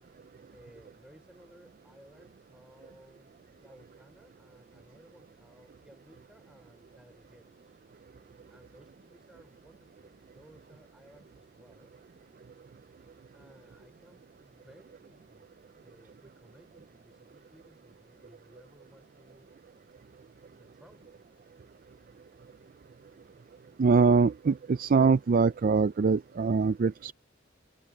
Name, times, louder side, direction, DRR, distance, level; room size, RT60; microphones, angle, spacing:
voice 1, 0.5-7.8 8.5-11.9 13.3-15.5 15.8-19.5 20.5-21.2, equal, 5° right, 5.1 m, -59 dB
voice 2, 23.8-27.1, right 4 dB, 45° right, 0.4 m, -23 dB
head